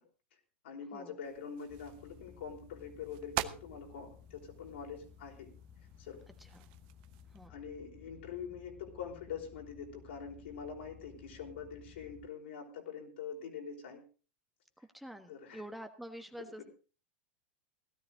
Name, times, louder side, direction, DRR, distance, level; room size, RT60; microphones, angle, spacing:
voice 1, 0.6-5.5 6.0-6.3 7.5-14.0 15.3-15.6, left 6 dB, 80° left, 2 dB, 4.9 m, -44 dB
sound 1, 1.2-7.5, right 15 dB, 60° right, 1.0 m, -45 dB
sound 2, 1.7-12.3, left 8 dB, 35° left, 1.4 m, -57 dB
voice 2, 6.4-6.7 7.3-7.5 14.8-16.6, right 1 dB, ahead, 6 dB, 1.3 m, -48 dB
17.0 x 12.5 x 3.9 m, 0.36 s
hypercardioid pair, 110°, 6 cm